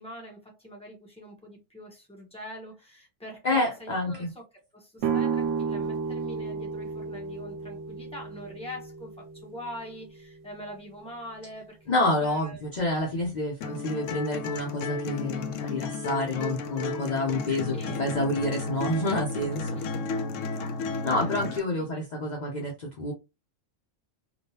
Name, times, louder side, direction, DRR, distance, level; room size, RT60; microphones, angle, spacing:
voice 1, 0.0-4.4 4.7-12.6 17.7-18.1 19.3-20.0 20.3-21.4 21.8-22.0, equal, 5° left, 1.1 m, -43 dB
voice 2, 3.4-4.3 11.9-20.0 21.0-23.1, left 1 dB, 40° left, 0.8 m, -28 dB
sound 1, 5.0-10.7, right 6 dB, 75° right, 0.9 m, -33 dB
sound 2, 13.6-21.6, left 3 dB, 80° left, 0.9 m, -33 dB
3.6 x 2.5 x 2.7 m
omnidirectional pair, 1.3 m